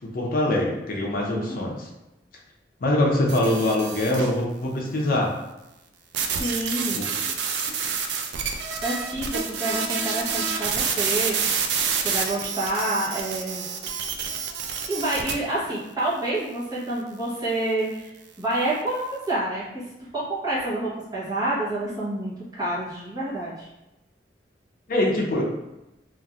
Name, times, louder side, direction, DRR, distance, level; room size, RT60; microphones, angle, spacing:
voice 1, 0.0-1.9 2.8-5.3 6.9-7.0 24.9-25.4, left 1 dB, 55° left, -2 dB, 0.5 m, -23 dB
voice 2, 1.1-1.6 6.4-7.0 8.8-11.4 12.0-13.7 14.9-18.1 18.4-19.6 20.1-23.7, right 1 dB, 20° right, -8 dB, 0.9 m, -28 dB
sound 1, 3.3-4.4 6.1-15.3, right 6 dB, 75° right, 0.3 m, -28 dB
3.0 x 2.5 x 2.4 m, 0.96 s
head